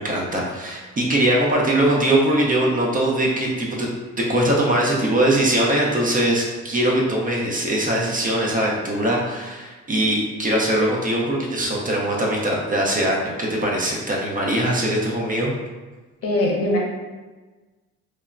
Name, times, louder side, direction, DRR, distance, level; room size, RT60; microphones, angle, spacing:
voice 1, 0.0-3.9 4.2-15.5, right 1 dB, 30° right, -3 dB, 0.5 m, -21 dB
voice 2, 16.2-16.8, left 1 dB, 50° left, -2 dB, 0.7 m, -21 dB
3.1 x 2.1 x 2.4 m, 1.3 s
cardioid pair, 90°, 30 cm